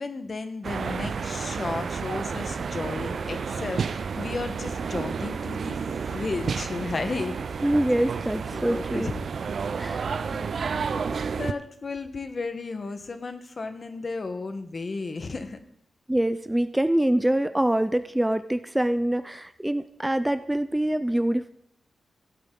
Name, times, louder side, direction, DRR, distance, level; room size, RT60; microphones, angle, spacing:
voice 1, 0.0-5.8 6.0-7.6 8.3-9.2 10.1-10.4 11.4-15.6, left 3 dB, 45° left, 9 dB, 1.1 m, -34 dB
sound 1, 0.6-11.5, right 5 dB, 65° right, 0.5 m, -31 dB
voice 2, 7.6-9.1 9.8-10.2 11.1-11.2 16.1-21.5, right 1 dB, 10° right, 11 dB, 0.4 m, -25 dB
16.0 x 8.6 x 3.8 m, 0.74 s
wide cardioid pair, 105°, 0 cm